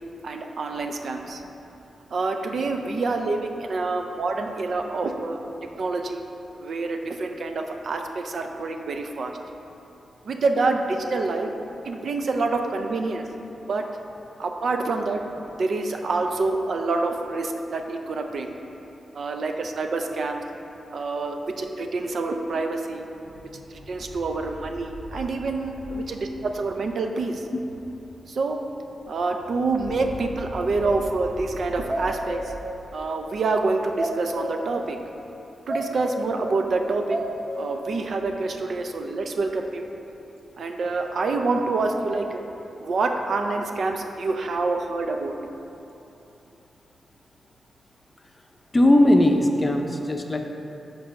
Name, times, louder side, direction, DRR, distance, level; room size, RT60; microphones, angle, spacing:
voice 1, 0.2-1.4 2.1-5.4 5.8-6.2 6.6-9.3 10.3-11.5 11.8-13.2 13.7-13.9 14.4-15.2 15.6-18.5 19.1-20.4 20.9-23.1 23.7-27.5 28.3-28.6 29.1-32.4 32.9-35.0 35.7-37.2 37.6-39.9 40.6-42.4 42.8-45.4, right 3 dB, 70° right, 4 dB, 0.5 m, -27 dB
sound 1, 23.1-28.3 28.6-28.7 28.9-33.3, equal, 85° right, 1.3 m, -42 dB
sound 2, 30.5-31.2 31.6-31.7 31.9-32.7 34.0-34.7 35.7-36.5 37.1-37.7, equal, 45° right, 0.9 m, -31 dB
voice 2, 48.7-50.4, left 1 dB, 25° left, 3 dB, 0.6 m, -19 dB
5.3 x 4.0 x 5.8 m, 2.9 s
cardioid pair, 70°, 0 cm